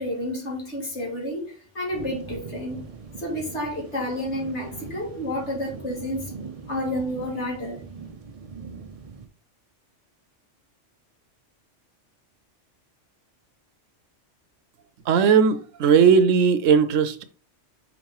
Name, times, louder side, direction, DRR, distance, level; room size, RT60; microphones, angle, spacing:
voice 1, 0.0-2.9 3.2-6.3 6.7-7.8, left 1 dB, 65° left, 2.5 m, -30 dB
sound 1, 1.9-9.3, right 5 dB, 40° right, 0.5 m, -41 dB
voice 2, 15.1-17.2, right 6 dB, 90° right, 1.1 m, -18 dB
5.3 x 3.8 x 4.7 m
omnidirectional pair, 1.3 m